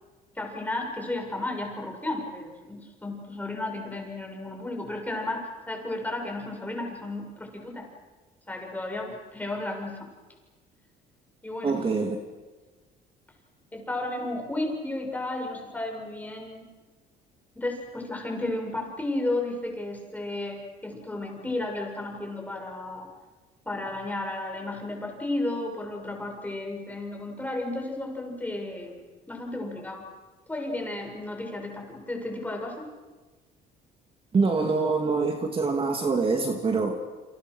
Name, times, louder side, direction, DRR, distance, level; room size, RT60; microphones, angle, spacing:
voice 1, 0.4-7.9 8.5-10.1 11.4-11.8 13.7-16.7 17.6-23.1 23.7-29.0 29.3-30.1 30.5-32.8, left 2 dB, 10° left, 1 dB, 6.9 m, -33 dB
voice 2, 11.6-12.2 34.3-37.0, right 4 dB, 30° right, 3 dB, 2.7 m, -25 dB
29.0 x 27.0 x 6.5 m, 1.3 s
cardioid pair, 110°, 17 cm